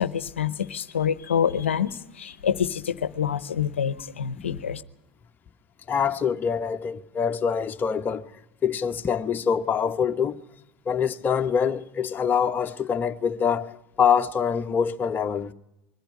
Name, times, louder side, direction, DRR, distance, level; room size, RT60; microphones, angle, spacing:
voice 1, 0.0-1.9 2.2-4.8, left 8 dB, 85° left, 0.8 m, -26 dB
voice 2, 5.9-8.4 8.6-10.4 10.9-15.5, left 7 dB, 30° left, 1.1 m, -25 dB
22.0 x 15.0 x 9.9 m
hypercardioid pair, 80°, 6 cm